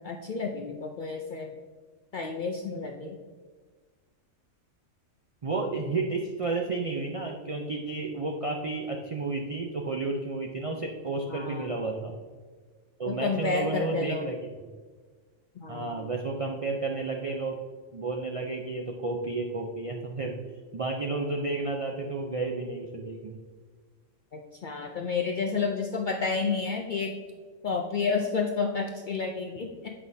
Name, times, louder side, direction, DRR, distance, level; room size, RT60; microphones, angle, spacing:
voice 1, 0.0-1.5 2.1-3.2 11.3-11.7 13.1-14.3 15.6-16.0 24.3-27.2 27.6-29.9, left 4 dB, 65° left, 2 dB, 0.5 m, -30 dB
voice 2, 5.4-12.2 13.0-14.4 15.7-17.6 17.9-20.4 20.7-23.4, right 3 dB, 65° right, 2 dB, 0.3 m, -31 dB
8.4 x 5.5 x 2.6 m, 1.5 s
omnidirectional pair, 1.3 m